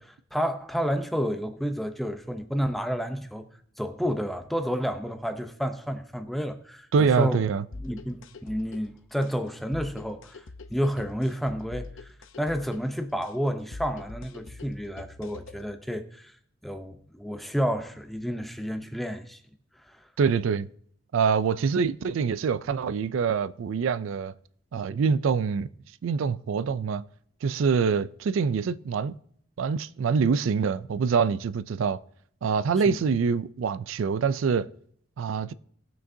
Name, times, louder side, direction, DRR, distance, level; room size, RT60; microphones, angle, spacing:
voice 1, 0.0-3.5 3.8-7.4 7.8-16.4 16.6-19.4 19.8-20.1 32.8-33.0, equal, ahead, 0.6 m, -30 dB
voice 2, 6.9-7.6 20.2-20.7 21.1-24.3 24.7-25.7 26.0-27.0 27.4-29.1 29.6-32.0 32.4-34.7 35.2-35.5, right 6 dB, 75° right, 0.3 m, -25 dB
sound 1, 7.7-15.7, left 3 dB, 75° left, 0.7 m, -44 dB
18.5 x 6.1 x 2.7 m
head